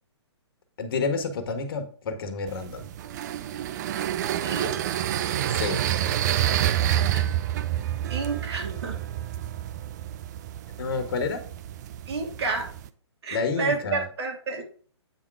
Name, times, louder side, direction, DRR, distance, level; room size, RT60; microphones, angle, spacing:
voice 1, 0.8-2.9 5.5-5.8 10.8-11.4 13.3-14.1, left 4 dB, 55° left, 7 dB, 1.6 m, -29 dB
sound 1, 2.5-12.9, right 11 dB, 40° right, 0.5 m, -28 dB
voice 2, 4.4-4.8 7.1-7.3 8.1-9.0 12.1-12.7 13.2-14.6, right 4 dB, 65° right, 2 dB, 2.7 m, -30 dB
9.0 x 3.8 x 4.8 m, 0.44 s
hypercardioid pair, 140°, 15 cm